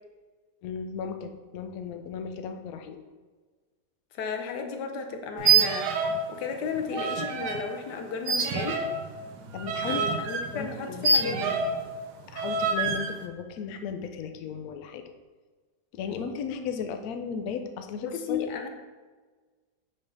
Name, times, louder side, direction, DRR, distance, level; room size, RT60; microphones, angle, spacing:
voice 1, 0.6-3.0 9.5-11.8 12.3-15.0 15.9-18.7, left 6 dB, 70° left, 7 dB, 1.0 m, -36 dB
voice 2, 4.1-5.9 6.3-8.9 9.9-11.6 18.0-18.7, left 5 dB, 90° left, 4 dB, 1.3 m, -34 dB
sound 1, 5.4-6.3 6.5-7.6 8.3-11.8 12.4-13.1, right 5 dB, 90° right, 1.3 m, -26 dB
5.5 x 3.5 x 5.3 m, 1.4 s
omnidirectional pair, 1.8 m